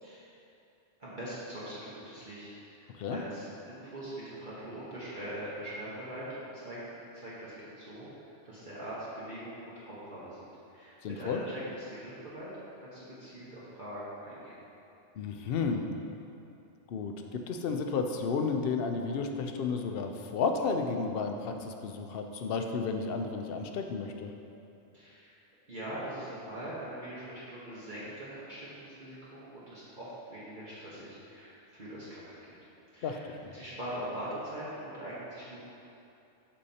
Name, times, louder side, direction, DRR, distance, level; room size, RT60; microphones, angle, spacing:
voice 1, 1.0-2.5 2.8-6.9 7.1-12.5 12.8-14.5 24.9-25.4 25.7-32.5 32.9-33.3 33.5-35.6, right 1 dB, 45° right, -10 dB, 1.3 m, -42 dB
voice 2, 11.0-11.4 15.2-15.9 16.9-17.1 17.5-24.3 33.0-33.6, left 5 dB, 60° left, 4 dB, 0.7 m, -32 dB
8.3 x 5.6 x 2.8 m, 2.7 s
omnidirectional pair, 1.2 m